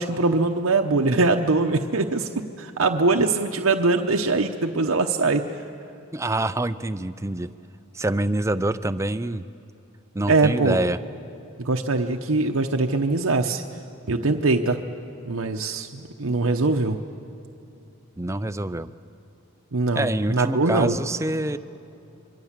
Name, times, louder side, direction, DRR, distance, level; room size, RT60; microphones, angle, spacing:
voice 1, 0.0-5.4 10.3-10.8 11.6-13.6 14.1-14.8 15.2-17.0 19.7-20.9, right 3 dB, 75° right, 3 dB, 0.9 m, -22 dB
voice 2, 6.1-7.5 7.9-9.4 10.1-11.0 18.2-18.9 19.9-21.6, right 1 dB, 15° right, 12 dB, 0.5 m, -26 dB
26.0 x 23.0 x 7.4 m, 2.8 s
head